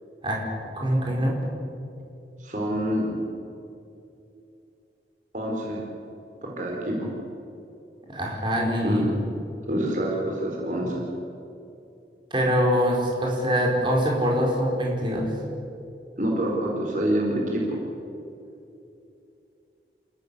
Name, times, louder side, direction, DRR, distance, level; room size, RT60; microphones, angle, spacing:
voice 1, 0.8-1.4 8.1-9.1 12.3-15.3, equal, 25° right, -2 dB, 4.8 m, -24 dB
voice 2, 2.4-3.1 5.3-5.8 6.4-7.1 8.8-9.1 9.7-11.0 16.2-17.9, right 1 dB, 45° right, -2 dB, 4.3 m, -26 dB
29.0 x 16.0 x 8.4 m, 2.7 s
head